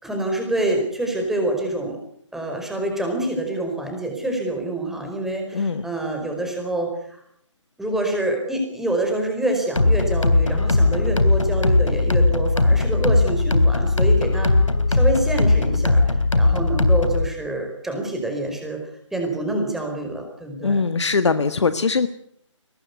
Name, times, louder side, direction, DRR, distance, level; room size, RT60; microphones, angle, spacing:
voice 1, 0.0-2.0 2.3-7.2 7.8-14.5 14.9-20.8, right 1 dB, ahead, 2 dB, 4.7 m, -26 dB
sound 1, 9.8-17.3, left 2 dB, 80° left, 3.2 m, -18 dB
voice 2, 20.6-22.1, left 4 dB, 60° left, 11 dB, 1.5 m, -21 dB
23.0 x 19.0 x 8.2 m, 0.69 s
figure-of-eight pair, 150°, 16 cm